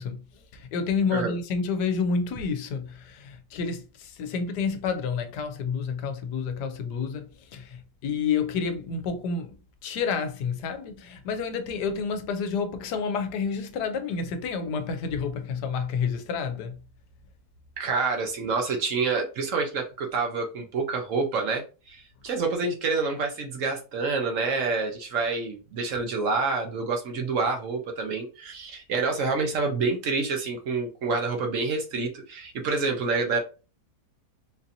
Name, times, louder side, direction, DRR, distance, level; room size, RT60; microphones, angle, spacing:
voice 1, 0.0-9.5 9.8-16.8, left 5 dB, 90° left, 1.2 m, -29 dB
voice 2, 17.8-21.6 21.9-33.4, right 4 dB, 60° right, 1.0 m, -27 dB
4.1 x 2.7 x 2.6 m
omnidirectional pair, 1.7 m